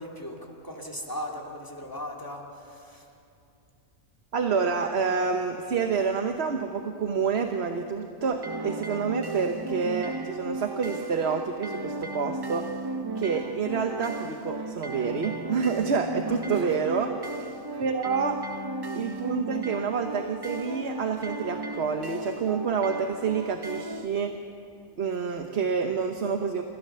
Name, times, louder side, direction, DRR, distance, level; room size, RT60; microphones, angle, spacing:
voice 1, 0.0-3.1 16.3-16.7, equal, 15° left, 0 dB, 2.7 m, -38 dB
voice 2, 4.3-12.7 13.2-17.1 17.8-18.4 18.9-24.3 25.0-26.6, right 5 dB, 60° right, 5 dB, 1.3 m, -28 dB
sound 1, 8.2-24.1, right 2 dB, 25° right, 0.6 m, -35 dB
29.5 x 15.0 x 6.8 m, 2.6 s
omnidirectional pair, 1.3 m